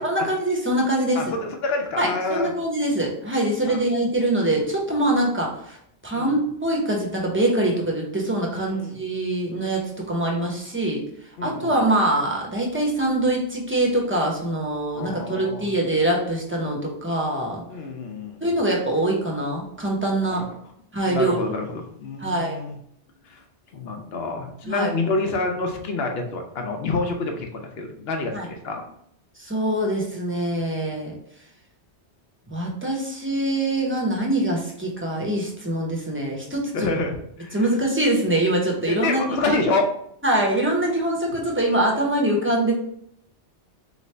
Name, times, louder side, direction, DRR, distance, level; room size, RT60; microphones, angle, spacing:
voice 1, 0.0-1.2 2.0-5.8 6.0-11.0 11.4-17.6 18.4-20.4 20.9-21.4 22.2-22.6 24.6-24.9 28.3-28.5 29.4-31.1 32.5-36.9 37.5-39.6 40.2-42.7, right 1 dB, 15° right, -1 dB, 0.7 m, -24 dB
voice 2, 1.1-2.5 3.6-3.8 6.1-6.4 8.7-9.0 11.4-11.8 14.9-15.7 17.7-18.4 20.3-20.4 21.0-22.7 23.2-23.4 23.7-28.9 36.7-37.8 38.9-39.9, left 3 dB, 60° left, 4 dB, 0.9 m, -27 dB
3.9 x 3.1 x 3.2 m, 0.70 s
omnidirectional pair, 1.2 m